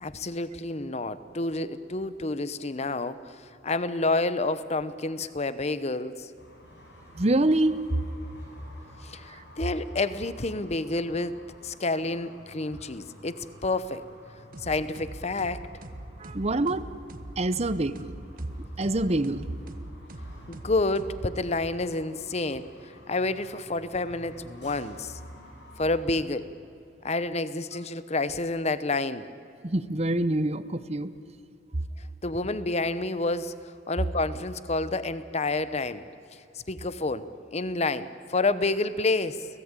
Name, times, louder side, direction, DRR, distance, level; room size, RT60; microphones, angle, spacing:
voice 1, 0.0-6.3 9.0-14.0 14.6-15.7 20.5-25.2 25.8-26.5 27.0-29.3 32.2-36.0 36.3-39.5, left 2 dB, 35° left, 14 dB, 0.9 m, -29 dB
sound 1, 6.4-26.0, equal, 65° left, 6.4 m, -50 dB
voice 2, 7.1-8.0 9.3-9.4 16.2-16.9 17.4-18.3 18.8-19.5 29.6-31.1, right 2 dB, 35° right, 14 dB, 0.9 m, -26 dB
sound 2, 14.5-21.7, right 1 dB, 50° right, 1.3 m, -43 dB
30.0 x 18.0 x 9.0 m, 2.7 s
head